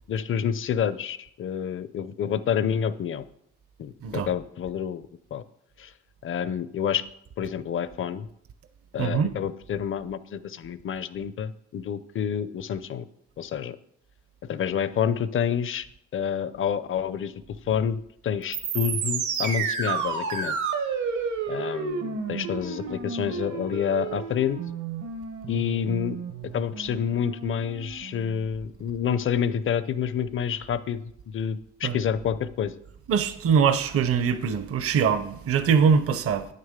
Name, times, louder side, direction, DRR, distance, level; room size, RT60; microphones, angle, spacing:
voice 1, 0.1-3.2 3.8-5.0 5.3-5.4 5.8-5.9 6.2-7.0 7.4-8.3 8.9-13.1 13.4-13.8 14.4-15.9 16.1-17.3 17.7-20.6 21.5-24.6 25.5-26.2 26.5-31.0 31.3-32.8, left 8 dB, 45° left, 0.5 m, -28 dB
voice 2, 9.0-9.3 31.8-32.0 33.1-36.5, right 6 dB, 50° right, 0.7 m, -22 dB
sound 1, 18.4-28.4, right 5 dB, 75° right, 1.1 m, -31 dB
8.6 x 6.6 x 3.7 m
cardioid pair, 90°, 30 cm